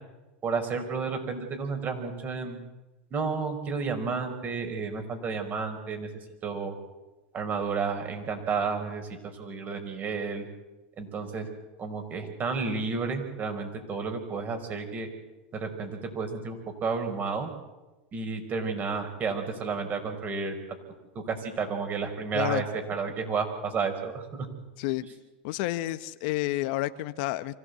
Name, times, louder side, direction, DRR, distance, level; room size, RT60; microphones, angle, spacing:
voice 1, 0.4-2.6 3.1-6.1 6.4-6.7 7.3-10.5 11.0-11.5 11.8-15.1 15.5-17.5 18.1-20.5 21.1-24.5, right 5 dB, 35° right, 6 dB, 5.1 m, -31 dB
voice 2, 25.4-27.6, left 16 dB, 65° left, 13 dB, 1.0 m, -30 dB
25.0 x 16.0 x 8.2 m, 1.1 s
hypercardioid pair, 105°, 5 cm